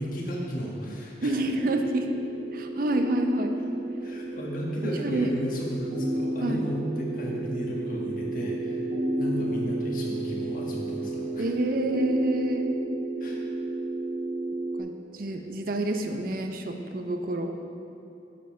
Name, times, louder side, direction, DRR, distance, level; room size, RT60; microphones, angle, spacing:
voice 1, 0.0-1.4 4.0-8.8 9.1-11.5 13.2-13.4, equal, 50° left, -3 dB, 1.5 m, -33 dB
voice 2, 1.2-2.1 2.5-3.5 5.0-5.3 6.4-6.7 11.4-12.8 14.8-17.5, right 2 dB, 55° right, 6 dB, 0.5 m, -28 dB
sound 1, 1.5-14.8, right 1 dB, 80° right, 2.2 m, -31 dB
8.5 x 5.2 x 5.6 m, 2.7 s
head